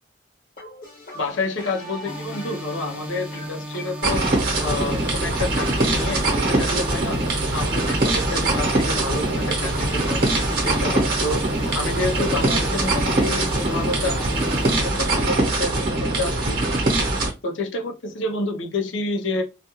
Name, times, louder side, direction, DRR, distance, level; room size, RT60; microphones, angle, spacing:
sound 1, 0.6-16.6, left 2 dB, 45° left, 1.1 m, -38 dB
voice 1, 1.1-4.2 4.6-7.2 7.5-10.2 10.6-11.4 11.7-14.3 14.7-16.6 17.4-19.4, left 2 dB, 85° left, 2 dB, 0.6 m, -29 dB
sound 2, 2.0-14.8, equal, 5° right, 0.4 m, -35 dB
sound 3, 4.0-17.3, right 2 dB, 50° right, 0.9 m, -22 dB
2.4 x 2.3 x 2.9 m, 0.28 s
head